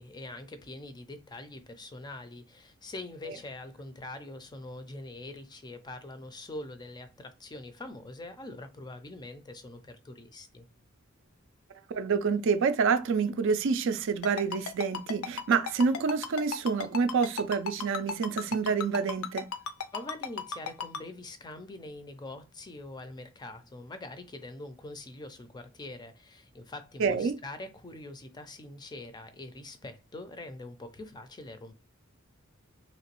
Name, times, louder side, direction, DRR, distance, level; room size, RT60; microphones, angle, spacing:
voice 1, 0.0-10.7 19.9-31.7, left 2 dB, 20° left, 0.4 m, -44 dB
voice 2, 11.9-19.5 27.0-27.4, right 5 dB, 65° right, 0.4 m, -27 dB
Ringtone, 14.2-21.0, left 6 dB, 80° left, 0.5 m, -34 dB
3.0 x 2.9 x 2.9 m
head